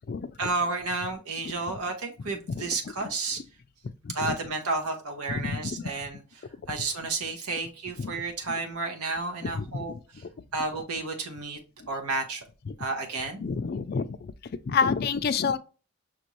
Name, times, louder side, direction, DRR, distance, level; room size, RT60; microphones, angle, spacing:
voice 1, 0.4-3.4 4.1-10.2 10.5-11.6 11.9-12.4 12.8-13.4, right 3 dB, 85° right, 0.9 m, -32 dB
voice 2, 5.3-5.8 8.0-8.1 9.4-10.0 12.7-12.8 13.4-14.3 14.7-15.6, left 5 dB, 45° left, 0.3 m, -29 dB
5.9 x 2.6 x 3.0 m
head